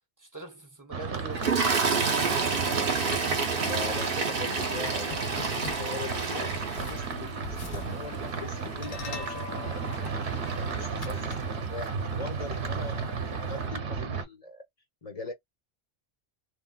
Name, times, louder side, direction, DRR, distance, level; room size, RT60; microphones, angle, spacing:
voice 1, 0.2-2.4, right 3 dB, 20° right, 0.6 m, -44 dB
sound 1, 0.9-14.2, right 5 dB, 85° right, 1.1 m, -34 dB
Toilet flush, 1.3-11.6 12.6-12.8 13.0-13.2, right 4 dB, 60° right, 0.9 m, -30 dB
voice 2, 3.5-6.5 6.8-9.9 10.7-14.6 15.0-15.3, left 3 dB, 35° left, 1.0 m, -41 dB
sound 2, 4.9-11.9, left 5 dB, 60° left, 0.6 m, -43 dB
3.3 x 2.4 x 2.2 m
omnidirectional pair, 1.1 m